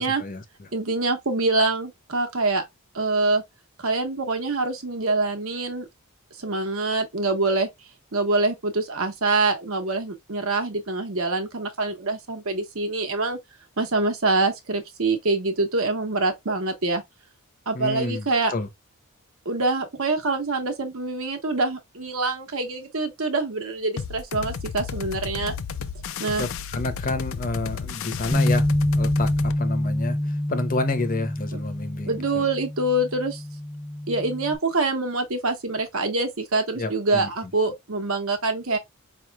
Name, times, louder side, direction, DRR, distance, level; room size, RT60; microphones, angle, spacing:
voice 1, 0.0-0.7 17.7-18.7 26.4-28.7 29.0-32.4 36.7-37.3, left 2 dB, 40° left, 0.8 m, -29 dB
voice 2, 0.7-2.6 2.9-3.4 3.8-5.8 6.4-7.7 8.1-13.4 13.8-17.0 17.7-18.5 19.4-25.5 26.2-26.5 32.1-33.4 34.1-38.8, right 3 dB, 65° right, 1.1 m, -25 dB
sound 1, 24.0-29.6, left 6 dB, 60° left, 0.5 m, -33 dB
Bass guitar, 28.3-34.6, left 1 dB, 5° left, 0.4 m, -26 dB
4.8 x 3.1 x 2.3 m
head